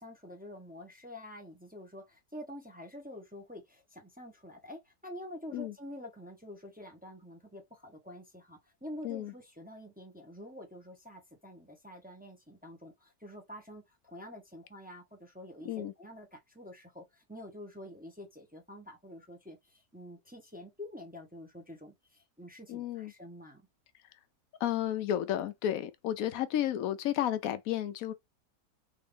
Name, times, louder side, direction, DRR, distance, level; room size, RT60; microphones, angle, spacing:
voice 1, 0.0-23.6, left 1 dB, 5° right, 0.8 m, -47 dB
voice 2, 22.7-23.1 24.6-28.1, left 11 dB, 75° left, 1.0 m, -32 dB
3.8 x 2.6 x 3.3 m
omnidirectional pair, 1.6 m